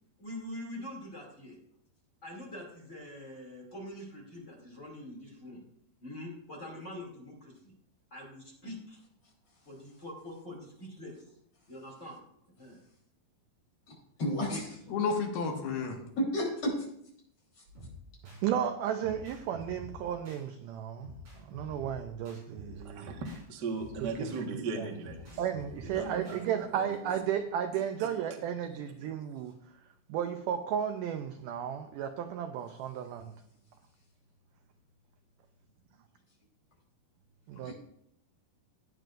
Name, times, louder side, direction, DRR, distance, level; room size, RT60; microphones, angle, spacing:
voice 1, 0.2-1.6 2.2-5.6 6.0-7.7 8.1-9.0 9.6-11.1 11.7-12.2 12.6-12.8, left 1 dB, 20° left, -2 dB, 2.3 m, -44 dB
voice 2, 14.2-14.8 16.2-16.7 37.6-37.7, equal, 40° left, -3 dB, 4.6 m, -31 dB
voice 3, 14.9-16.0, left 5 dB, 75° left, 1 dB, 3.5 m, -31 dB
sound 1, 17.7-18.4 19.0-20.4 21.0-23.4 23.8-26.4, left 1 dB, 45° right, 6.4 m, -48 dB
voice 4, 18.4-21.1 21.5-23.1 24.0-24.3 24.8-24.9 25.4-29.6 30.1-33.3 37.5-37.7, right 9 dB, 90° right, 7 dB, 1.8 m, -34 dB
voice 5, 22.8-25.4 25.8-27.0 28.0-28.1, right 4 dB, 70° right, 1 dB, 0.9 m, -38 dB
17.0 x 9.1 x 2.5 m, 0.72 s
omnidirectional pair, 4.5 m